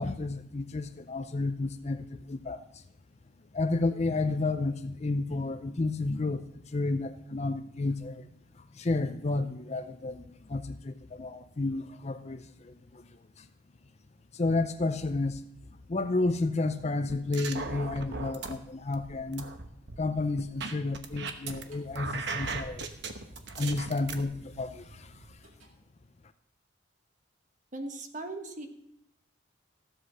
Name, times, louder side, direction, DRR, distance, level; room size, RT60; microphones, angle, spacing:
voice 1, 0.0-2.8 3.5-8.3 8.5-13.1 13.4-13.5 14.3-15.4 15.9-19.5 20.0-22.9 23.5-25.4, left 2 dB, 30° left, 11 dB, 0.5 m, -31 dB
sound 1, 17.1-18.5 18.9-21.6 21.9-24.2, right 4 dB, 55° right, 1.1 m, -37 dB
sound 2, 20.7-20.8 21.4-25.7, right 1 dB, 80° right, 2.1 m, -49 dB
voice 2, 27.7-28.7, right 2 dB, 40° right, 5 dB, 1.2 m, -38 dB
14.5 x 7.9 x 6.2 m, 0.77 s
head